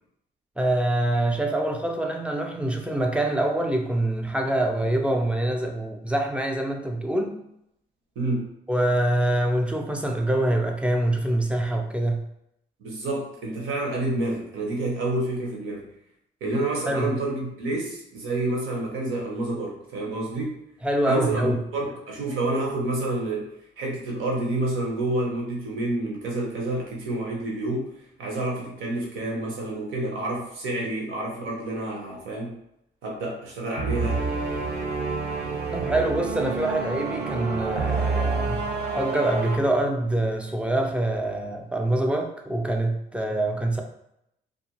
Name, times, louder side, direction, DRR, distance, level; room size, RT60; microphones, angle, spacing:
voice 1, 0.6-7.4 8.7-12.2 16.9-17.1 20.8-21.6 35.7-38.6 38.9-43.8, right 1 dB, 5° right, 3 dB, 0.4 m, -25 dB
voice 2, 8.2-8.5 12.8-15.9 16.4-20.6 21.0-23.5 23.8-32.6 33.0-34.2, right 2 dB, 80° right, -1 dB, 0.9 m, -29 dB
sound 1, 33.8-39.6, right 4 dB, 60° right, 0.6 m, -28 dB
2.5 x 2.2 x 2.9 m, 0.80 s
cardioid pair, 90°, 20 cm